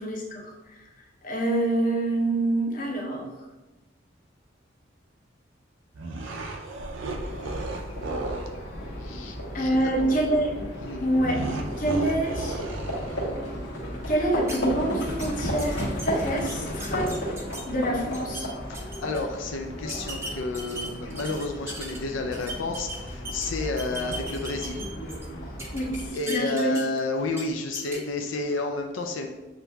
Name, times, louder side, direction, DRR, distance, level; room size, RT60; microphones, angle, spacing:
voice 1, 0.0-0.5 1.2-3.3 9.5-10.5 11.0-11.4 11.8-12.6 14.1-17.1 17.7-18.5 25.7-26.8, right 1 dB, 45° left, -1 dB, 0.7 m, -26 dB
sound 1, 5.9-8.6 11.2-13.5, right 2 dB, 85° right, 0.5 m, -34 dB
Livestock farm animals working animals, 7.1-26.1, equal, 65° left, 1.4 m, -34 dB
voice 2, 9.0-10.1 10.8-11.1 18.7-24.9 26.1-29.3, left 3 dB, 90° left, 3 dB, 0.4 m, -31 dB
sound 2, 14.5-14.6 15.0-15.3 15.6-17.6 18.0-18.4 18.7-19.2 19.9-22.0 22.3-23.5 23.8-25.3 25.6-27.0 27.3-27.4 27.7-28.0, right 2 dB, 15° right, 0.5 m, -38 dB
7.3 x 2.6 x 2.3 m, 1.1 s
head